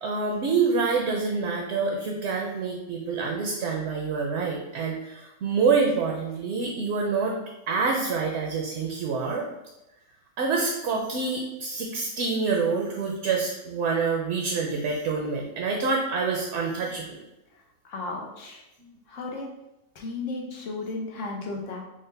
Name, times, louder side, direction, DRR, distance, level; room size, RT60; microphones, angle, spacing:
voice 1, 0.0-7.4 7.7-9.4 10.4-17.2, right 4 dB, 70° right, 0 dB, 0.8 m, -27 dB
voice 2, 17.5-18.6 19.1-19.5 19.9-21.8, left 3 dB, 80° left, 0 dB, 1.1 m, -34 dB
5.1 x 2.1 x 3.2 m, 0.93 s
omnidirectional pair, 1.3 m